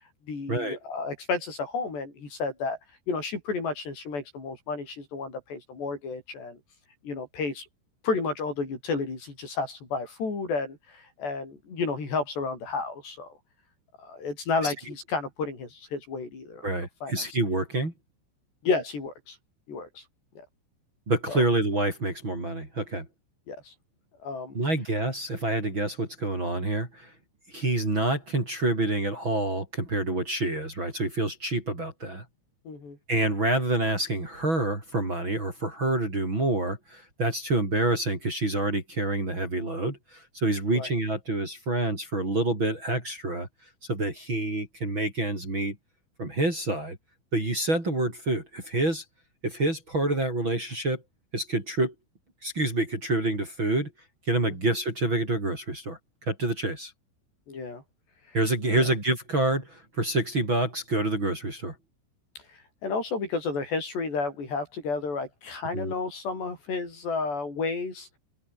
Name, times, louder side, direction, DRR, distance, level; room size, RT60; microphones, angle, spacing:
voice 1, 0.3-2.8 3.1-6.6 7.0-7.7 8.0-13.3 14.0-16.7 17.0-17.2 18.6-19.4 19.7-20.0 21.3-21.4 23.5-23.7 24.2-24.6 32.7-33.0 40.7-40.9 57.5-57.8 58.7-58.9 62.8-68.1, left 4 dB, 55° left, 9.6 m, -31 dB
voice 2, 16.6-17.9 21.1-23.1 24.5-27.1 27.5-32.2 33.1-43.5 43.9-45.8 46.2-47.0 47.3-49.0 49.4-51.0 51.3-51.9 52.4-53.9 54.3-56.0 56.3-56.9 58.3-61.7 65.7-65.9, right 2 dB, 25° right, 5.9 m, -27 dB
open air
omnidirectional pair, 6.0 m